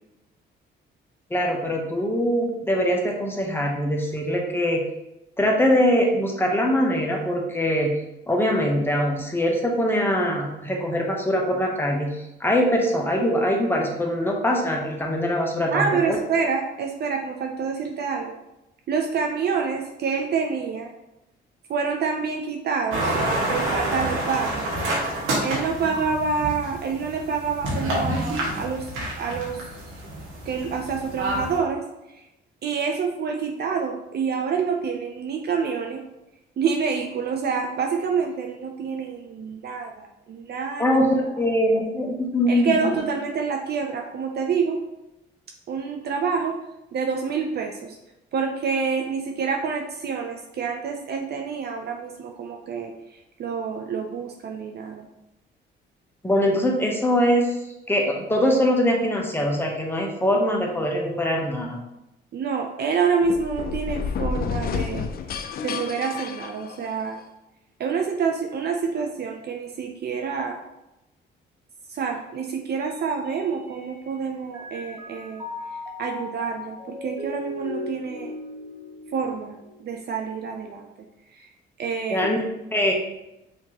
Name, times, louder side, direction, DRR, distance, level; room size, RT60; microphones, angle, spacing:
voice 1, 1.3-4.8 5.4-8.0 8.3-16.2 40.8-42.9 56.2-57.6 57.9-61.8 82.1-82.4 82.7-82.9, equal, 10° left, 0 dB, 0.9 m, -22 dB
voice 2, 15.7-18.4 18.9-20.9 21.7-23.2 23.5-24.6 25.4-28.9 29.2-29.7 30.5-31.8 32.6-36.0 36.6-41.4 42.5-44.8 45.7-46.6 46.9-48.0 48.3-55.1 62.3-65.1 65.6-67.2 67.8-70.6 71.9-75.4 76.0-78.3 79.1-80.9 81.3-81.5 81.8-82.3, right 5 dB, 55° right, 2 dB, 0.6 m, -27 dB
sound 1, 22.9-31.6, right 1 dB, 90° right, 1.4 m, -28 dB
sound 2, 63.2-67.2, left 6 dB, 50° left, 0.4 m, -30 dB
Mallet percussion, 72.8-74.2 74.5-80.0, left 2 dB, 15° right, 1.4 m, -38 dB
5.8 x 2.9 x 2.9 m, 0.92 s
cardioid pair, 90°, 20 cm